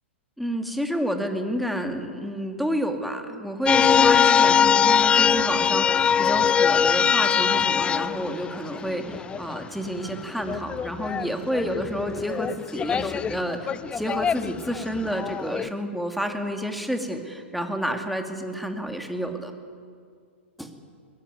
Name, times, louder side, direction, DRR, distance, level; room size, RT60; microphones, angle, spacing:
voice 1, 0.4-19.5 20.6-20.7, equal, ahead, 4 dB, 2.4 m, -29 dB
sound 1, 3.7-9.7 10.0-15.7, left 7 dB, 15° left, 0.5 m, -22 dB
22.0 x 18.0 x 9.7 m, 2.2 s
figure-of-eight pair, 105°, 6 cm